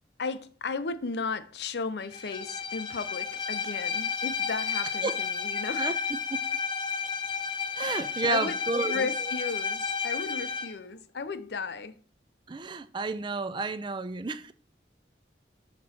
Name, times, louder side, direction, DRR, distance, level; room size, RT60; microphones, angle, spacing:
voice 1, 0.2-6.0 7.9-12.0, left 4 dB, 65° left, 0.5 m, -35 dB
Bowed string instrument, 2.1-10.8, left 6 dB, 25° left, 0.6 m, -32 dB
voice 2, 7.7-9.1 12.5-14.5, right 3 dB, 25° right, 0.4 m, -31 dB
8.1 x 3.0 x 6.3 m
head